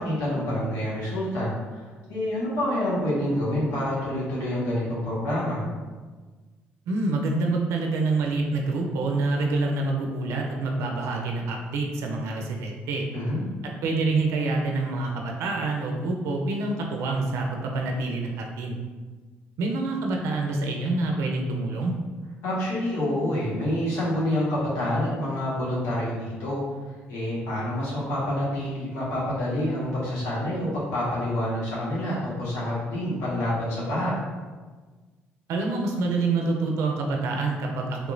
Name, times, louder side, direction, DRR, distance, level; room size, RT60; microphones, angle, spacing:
voice 1, 0.0-5.6 13.1-13.4 22.4-26.6 27.1-34.2, left 1 dB, 80° left, -7 dB, 1.4 m, -27 dB
voice 2, 6.9-13.0 13.6-18.8 19.6-21.9 35.5-38.1, right 3 dB, 75° right, 1 dB, 0.5 m, -27 dB
3.4 x 2.9 x 2.6 m, 1.3 s
supercardioid pair, 75°, 5 cm